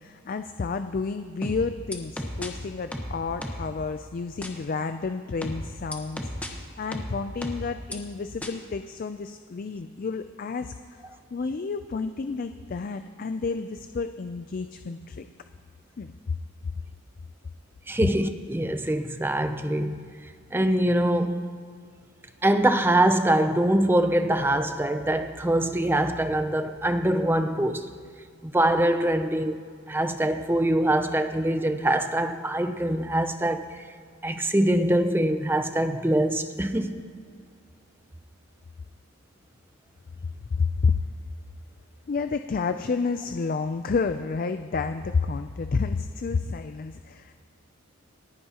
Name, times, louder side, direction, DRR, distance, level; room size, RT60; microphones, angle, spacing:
voice 1, 0.0-11.0 11.3-15.3 16.0-16.4 40.5-41.0 42.1-47.4, left 4 dB, 40° left, 0.4 m, -30 dB
sound 1, 1.4-2.5 2.9-3.7 4.4-4.5 5.4-6.5 6.9-7.9 8.4-8.5, equal, 5° left, 1.1 m, -33 dB
voice 2, 17.9-20.1 20.5-21.4 22.4-27.9 28.4-29.6 29.9-33.8 34.2-37.0, right 1 dB, 10° right, 0.5 m, -24 dB
28.0 x 10.0 x 2.9 m
head